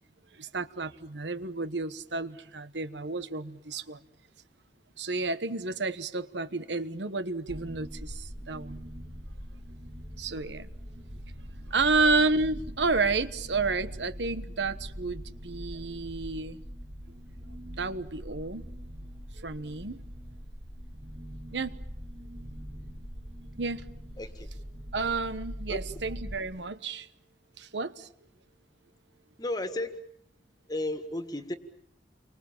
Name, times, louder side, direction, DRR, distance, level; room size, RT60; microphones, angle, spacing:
voice 1, 0.3-4.0 5.0-8.8 10.2-10.7 11.7-16.6 17.8-18.6 19.3-20.0 21.5-21.8 23.6-23.8 24.9-27.1 27.6-28.1, right 3 dB, 80° right, 1.2 m, -31 dB
Modulaat Sector, 7.5-26.4, equal, 35° right, 3.5 m, -42 dB
voice 2, 29.4-30.0 30.7-31.5, left 1 dB, 20° left, 1.8 m, -33 dB
29.5 x 24.5 x 7.3 m
head